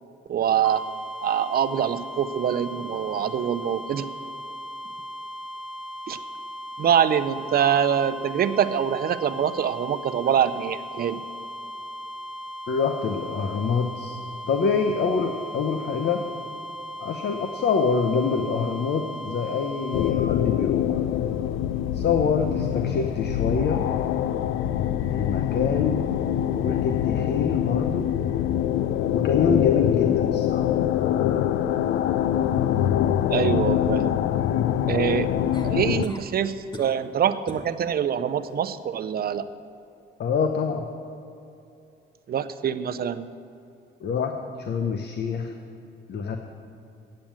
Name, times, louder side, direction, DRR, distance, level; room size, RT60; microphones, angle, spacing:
voice 1, 0.3-0.8 1.2-4.1 6.1-6.2 6.8-11.2 33.3-34.2 34.9-35.3 35.6-39.5 42.3-43.3, right 8 dB, 50° right, 12 dB, 0.5 m, -24 dB
sound 1, 0.6-20.2, equal, 5° right, 1.2 m, -38 dB
voice 2, 12.7-14.2 14.5-16.2 17.0-21.0 21.9-23.8 25.1-26.0 26.6-28.1 29.1-30.7 40.2-40.9 44.0-45.5 46.1-46.4, left 5 dB, 55° left, 5 dB, 0.8 m, -26 dB
sound 2, 19.9-36.1, left 11 dB, 85° left, 0.4 m, -24 dB
sound 3, 35.5-36.3 36.7-37.1 37.5-37.7 38.2-38.6 40.4-40.5, left 1 dB, 20° left, 1.1 m, -42 dB
8.5 x 7.6 x 8.8 m, 2.7 s
cardioid pair, 90°, 20 cm